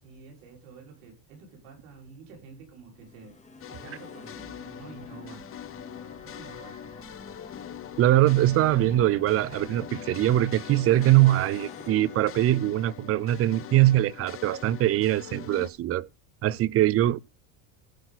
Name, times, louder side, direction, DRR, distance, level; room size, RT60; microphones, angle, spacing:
voice 1, 0.0-3.3 3.7-5.5 6.2-6.8, right 4 dB, 80° right, 5.6 m, -48 dB
sound 1, 2.9-13.1, left 3 dB, 15° left, 2.2 m, -48 dB
sound 2, 3.6-15.7, left 10 dB, 35° left, 0.9 m, -43 dB
voice 2, 8.0-16.1 16.4-17.2, right 14 dB, 35° right, 0.5 m, -22 dB
16.5 x 6.0 x 4.1 m
supercardioid pair, 115°, 40 cm